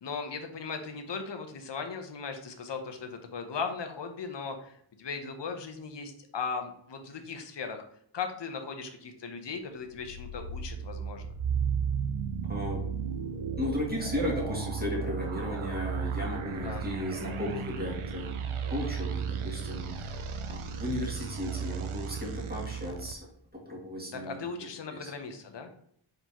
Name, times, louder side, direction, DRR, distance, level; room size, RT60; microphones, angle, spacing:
voice 1, 0.0-7.8 8.1-11.2 16.6-16.8 24.1-25.7, left 5 dB, 60° left, 6 dB, 0.8 m, -38 dB
sound 1, 9.9-23.1, right 6 dB, 80° right, 0.6 m, -34 dB
voice 2, 12.5-12.9 13.6-18.3 18.7-20.2 20.5-25.1, left 1 dB, 20° right, -3 dB, 1.9 m, -35 dB
4.5 x 3.8 x 2.9 m, 0.67 s
wide cardioid pair, 55°, 49 cm